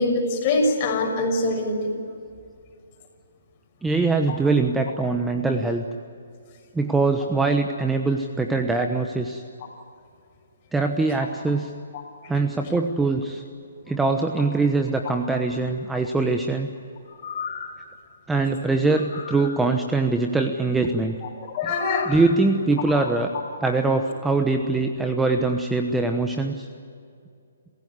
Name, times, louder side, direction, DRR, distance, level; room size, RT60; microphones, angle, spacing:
voice 1, 0.0-1.9 4.3-4.4 21.4-22.1, left 2 dB, 35° left, 2 dB, 6.2 m, -23 dB
voice 2, 3.8-5.8 6.7-9.4 10.7-11.7 12.3-13.4 13.9-16.7 18.3-21.2 21.6-21.7 22.1-23.3 23.6-26.7, right 3 dB, 5° right, 4 dB, 1.1 m, -23 dB
sound 1, 17.1-17.9 18.9-19.6 21.7-22.3 22.8-22.9, left 6 dB, 50° left, 4.9 m, -36 dB
28.0 x 16.0 x 9.7 m, 2.4 s
hypercardioid pair, 150°, 0 cm